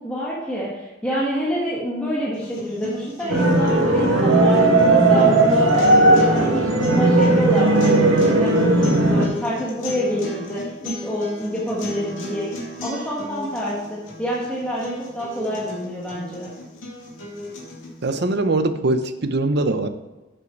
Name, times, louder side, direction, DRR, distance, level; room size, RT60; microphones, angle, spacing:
voice 1, 0.0-12.5 12.8-16.5, equal, 5° left, -7 dB, 1.5 m, -27 dB
sound 1, 2.3-18.3, left 1 dB, 75° left, 2.4 m, -36 dB
sound 2, 3.3-9.3, right 2 dB, 85° right, 1.4 m, -16 dB
voice 2, 18.0-19.9, right 2 dB, 55° right, 10 dB, 0.7 m, -22 dB
7.7 x 6.5 x 5.9 m, 1.1 s
head